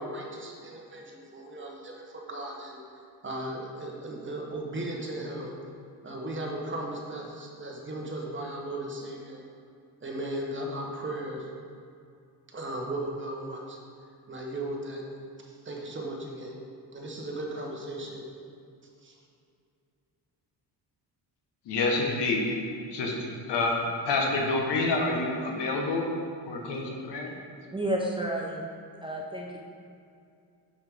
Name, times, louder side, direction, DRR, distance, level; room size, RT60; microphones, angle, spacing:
voice 1, 0.0-2.8 3.2-5.6 6.0-9.4 10.0-11.5 12.5-13.8 14.3-15.1 15.5-16.6 16.9-18.3 19.0-19.2, right 1 dB, 30° right, -1 dB, 1.1 m, -36 dB
voice 2, 21.7-22.4 22.9-23.1 23.5-26.0 26.5-27.3, left 3 dB, 75° left, 0 dB, 1.3 m, -27 dB
voice 3, 27.7-28.7 29.0-29.6, right 1 dB, 10° right, -2 dB, 0.5 m, -31 dB
6.4 x 6.3 x 3.6 m, 2.4 s
cardioid pair, 110°, 42 cm